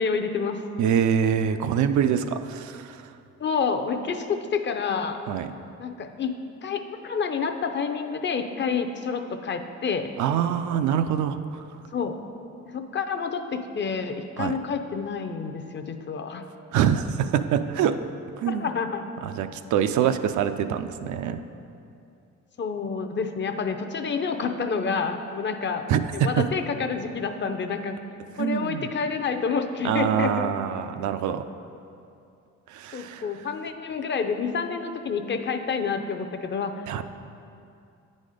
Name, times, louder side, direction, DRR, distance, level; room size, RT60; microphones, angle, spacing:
voice 1, 0.0-0.6 3.4-5.2 5.8-10.1 11.9-12.2 12.7-16.4 18.5-19.0 22.6-25.9 26.1-27.9 28.4-30.5 32.9-37.0, left 5 dB, 40° left, 7 dB, 0.5 m, -28 dB
voice 2, 0.8-3.1 5.3-5.5 10.2-11.6 14.4-14.6 16.7-18.1 18.4-18.6 19.2-21.4 25.9-26.5 28.4-28.9 29.8-31.5 32.7-33.3 36.9-37.0, right 8 dB, 70° right, 10 dB, 0.4 m, -25 dB
9.0 x 4.2 x 4.9 m, 2.6 s
cardioid pair, 90°, 30 cm